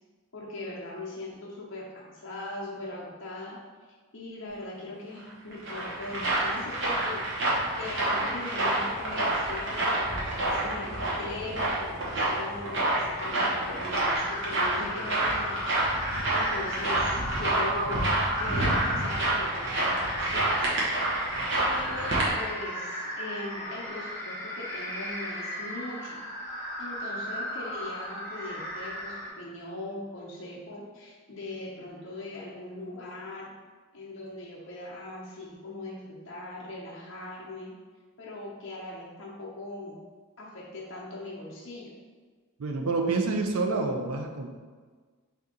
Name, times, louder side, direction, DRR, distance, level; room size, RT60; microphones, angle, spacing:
voice 1, 0.3-3.6 4.1-15.6 16.0-20.7 21.6-26.2 26.8-33.5 33.9-37.7 38.2-40.0 40.4-41.9, left 2 dB, 55° left, -5 dB, 0.7 m, -40 dB
sound 1, 5.3-22.3, right 1 dB, 55° right, 0.9 m, -28 dB
sound 2, 14.1-29.3, equal, 10° left, 1.1 m, -36 dB
voice 2, 42.6-44.5, right 3 dB, 75° right, 2 dB, 0.5 m, -28 dB
3.5 x 2.8 x 3.8 m, 1.5 s
head